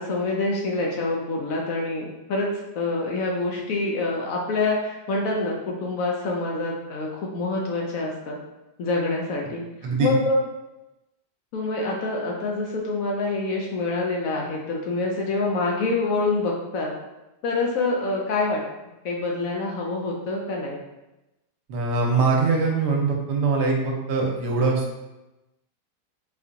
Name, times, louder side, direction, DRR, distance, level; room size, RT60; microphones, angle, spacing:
voice 1, 0.0-2.5 2.7-8.4 8.8-9.6 10.0-10.4 11.5-16.9 17.4-18.6 19.0-20.8, left 3 dB, 70° left, -1 dB, 0.8 m, -26 dB
voice 2, 21.7-24.8, right 4 dB, 75° right, -1 dB, 1.3 m, -22 dB
4.1 x 2.7 x 2.6 m, 0.97 s
omnidirectional pair, 1.8 m